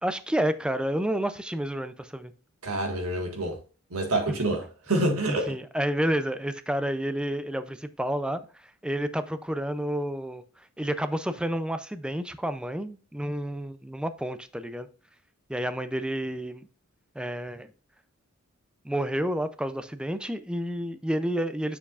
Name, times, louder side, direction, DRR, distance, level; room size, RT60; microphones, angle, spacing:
voice 1, 0.0-2.3 5.3-10.4 10.8-14.9 15.5-16.7 17.2-17.7 18.8-21.8, right 1 dB, 5° right, 0.4 m, -30 dB
voice 2, 2.6-3.6 3.9-5.6, right 2 dB, 85° right, 1.8 m, -27 dB
7.1 x 6.8 x 2.4 m
head